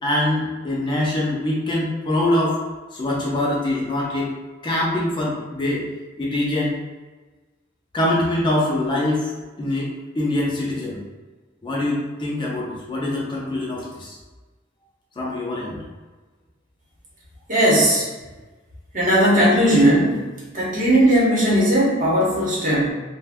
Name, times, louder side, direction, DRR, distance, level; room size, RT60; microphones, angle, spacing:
voice 1, 0.0-2.6 2.9-4.3 4.6-5.8 6.2-6.7 7.9-9.3 9.6-11.0 11.6-14.2 15.2-15.8, left 1 dB, 25° left, -4 dB, 0.5 m, -23 dB
voice 2, 17.5-18.1 18.9-20.2 20.5-22.9, right 1 dB, 45° right, -6 dB, 0.9 m, -17 dB
2.4 x 2.2 x 3.5 m, 1.2 s
head